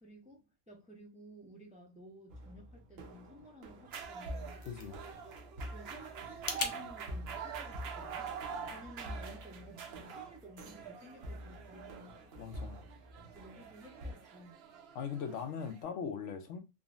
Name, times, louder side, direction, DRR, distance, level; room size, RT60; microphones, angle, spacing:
voice 1, 0.0-4.6 5.7-8.4 8.7-12.1 13.4-14.6, equal, 10° right, 0.4 m, -54 dB
sound 1, 2.3-14.1, equal, 85° right, 1.1 m, -48 dB
sound 2, 3.9-15.8, right 7 dB, 60° right, 0.8 m, -46 dB
sound 3, 4.1-6.8, left 4 dB, 55° left, 0.4 m, -42 dB
voice 2, 4.7-5.0 12.3-12.8 14.9-16.6, left 6 dB, 75° left, 0.9 m, -40 dB
3.7 x 2.0 x 2.3 m
omnidirectional pair, 1.3 m